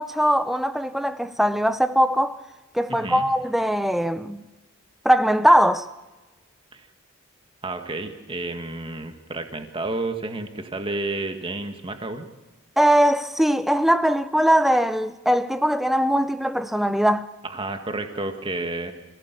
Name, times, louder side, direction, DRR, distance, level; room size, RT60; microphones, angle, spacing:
voice 1, 0.0-2.4 2.7-4.4 5.0-5.9 12.8-17.3, equal, ahead, 0.6 m, -20 dB
voice 2, 2.9-3.3 6.7-6.9 7.6-12.3 17.4-18.9, right 2 dB, 25° right, 1.8 m, -31 dB
25.5 x 16.5 x 8.3 m
head